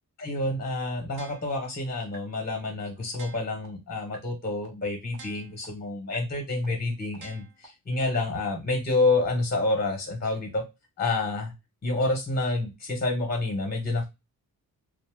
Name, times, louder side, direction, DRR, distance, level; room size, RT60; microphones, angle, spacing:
voice 1, 0.2-10.7 11.0-11.5 11.8-14.0, left 2 dB, 25° left, 1 dB, 0.9 m, -28 dB
sound 1, 1.2-1.7 2.1-2.2 2.6-2.7 3.1-3.7 4.1-4.2 4.6-4.7 5.1-5.7 6.1-6.2 6.6-6.7 7.1-7.7 8.1-8.2, right 4 dB, 80° right, 0.9 m, -47 dB
2.7 x 2.0 x 3.3 m, 0.23 s
wide cardioid pair, 130°, 36 cm